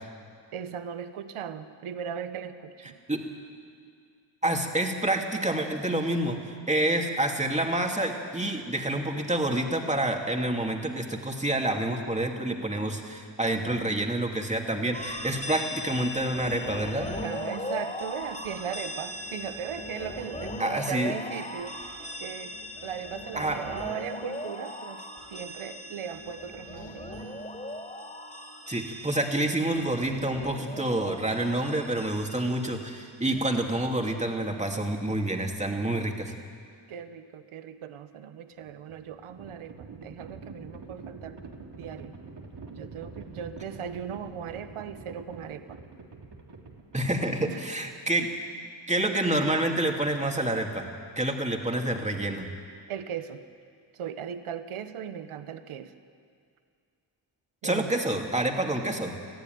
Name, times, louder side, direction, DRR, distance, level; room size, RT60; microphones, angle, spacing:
voice 1, 0.5-3.0 17.2-21.8 22.2-22.6 22.8-27.2 31.8-32.0 36.9-41.4 41.8-42.1 42.7-45.8 47.4-47.6 52.9-53.4 53.9-55.9 57.6-57.9, right 8 dB, 80° right, 10 dB, 1.1 m, -38 dB
voice 2, 4.4-17.1 20.6-21.1 23.4-23.6 28.7-36.3 46.9-48.3 48.9-50.9 51.2-52.5 57.6-59.2, right 1 dB, 15° right, 2 dB, 2.7 m, -28 dB
sound 1, 14.9-33.4, left 1 dB, 15° left, 3.4 m, -39 dB
Livestock farm animals working animals, 38.5-47.6, right 4 dB, 55° right, 3.0 m, -45 dB
21.0 x 14.5 x 9.5 m, 2.2 s
cardioid pair, 70°, 49 cm